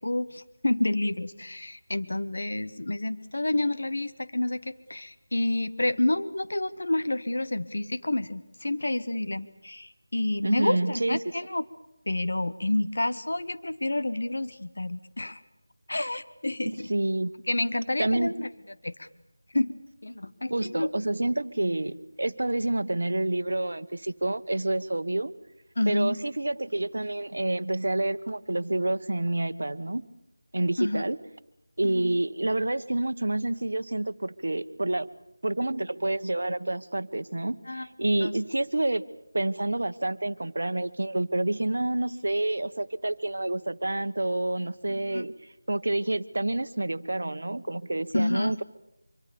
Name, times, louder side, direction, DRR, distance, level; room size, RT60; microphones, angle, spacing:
voice 1, 0.0-11.6 12.1-15.4 15.9-16.9 17.5-18.5 18.8-19.1 19.5-19.8 20.0-20.9 25.8-26.2 30.8-31.0 31.9-32.1 37.7-37.9 38.2-38.3 45.1-45.2 48.1-48.6, left 1 dB, 70° left, 12 dB, 1.3 m, -29 dB
voice 2, 10.4-11.2 16.6-17.3 18.0-18.3 20.5-25.3 25.9-30.0 30.5-31.2 31.8-35.1 35.4-39.0 39.3-48.6, right 2 dB, 70° right, 12 dB, 1.2 m, -28 dB
25.5 x 24.0 x 7.0 m, 0.88 s
figure-of-eight pair, 175°, 0 cm